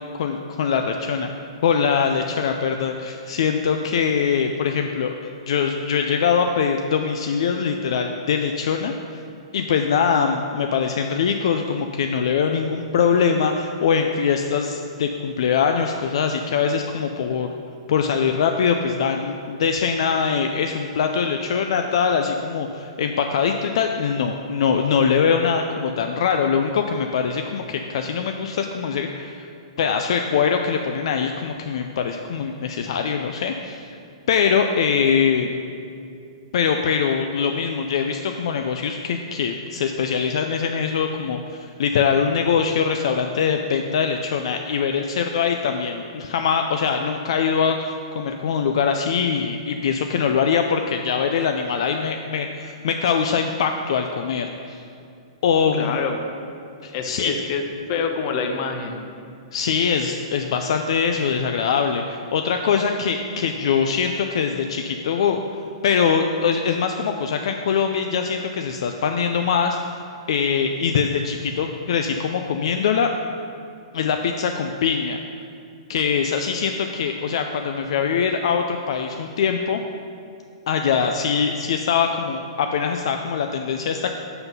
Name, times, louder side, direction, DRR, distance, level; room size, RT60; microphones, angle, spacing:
voice 1, 0.2-1.3 1.6-8.9 9.5-17.5 17.9-29.5 29.8-33.9 34.3-35.6 36.5-54.8 55.4-56.0 56.8-57.3 59.5-65.4 65.8-69.9 70.3-73.1 73.9-75.2 75.9-79.8 80.7-84.1, left 6 dB, 65° left, 5 dB, 0.4 m, -22 dB
voice 2, 55.7-56.2 56.9-57.6 57.9-59.0, left 5 dB, 40° left, 5 dB, 0.8 m, -26 dB
5.8 x 5.7 x 5.4 m, 2.5 s
hypercardioid pair, 150°, 3 cm